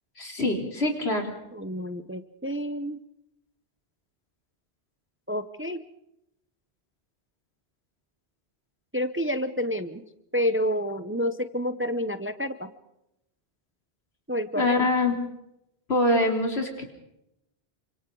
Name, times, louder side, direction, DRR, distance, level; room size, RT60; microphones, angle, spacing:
voice 1, 0.2-1.3 14.6-15.1 15.9-16.8, left 2 dB, 70° left, 2 dB, 3.9 m, -24 dB
voice 2, 1.5-3.0 5.3-5.8 8.9-10.0 10.3-12.7 14.3-14.9, equal, 15° right, 10 dB, 0.8 m, -29 dB
28.0 x 25.5 x 3.9 m, 0.83 s
omnidirectional pair, 1.1 m